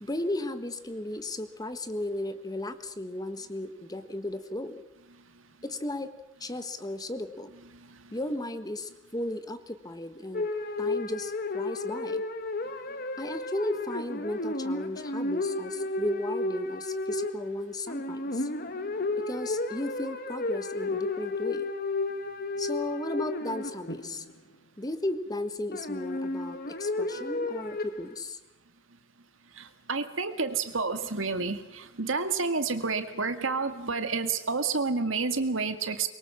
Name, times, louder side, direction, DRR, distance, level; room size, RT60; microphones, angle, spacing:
voice 1, 0.0-4.8 5.6-6.1 6.4-7.5 8.1-10.5 10.8-12.2 13.2-18.5 19.3-21.7 22.6-24.2 24.8-28.4, left 1 dB, 20° left, 10 dB, 1.4 m, -35 dB
sound 1, 10.3-24.3 25.7-28.2, left 2 dB, 50° left, 1.5 m, -32 dB
voice 2, 29.6-36.1, right 4 dB, 85° right, 8 dB, 2.1 m, -29 dB
24.0 x 23.0 x 7.3 m, 0.92 s
head